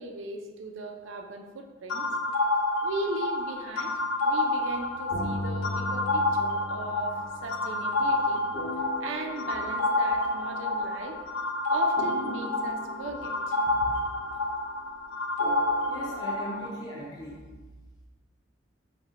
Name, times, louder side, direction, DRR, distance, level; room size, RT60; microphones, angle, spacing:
voice 1, 0.0-2.1 2.8-3.9 4.2-8.4 9.0-11.2 11.7-13.6, right 3 dB, 70° right, 4 dB, 0.5 m, -38 dB
sound 1, 1.9-16.7, left 2 dB, 85° left, 0.5 m, -29 dB
sound 2, 4.6-11.3 12.0-14.7 15.4-17.0, left 1 dB, 55° left, 1.5 m, -40 dB
voice 2, 15.9-17.5, equal, 20° left, -5 dB, 0.5 m, -39 dB
5.1 x 2.1 x 4.0 m, 1.3 s
head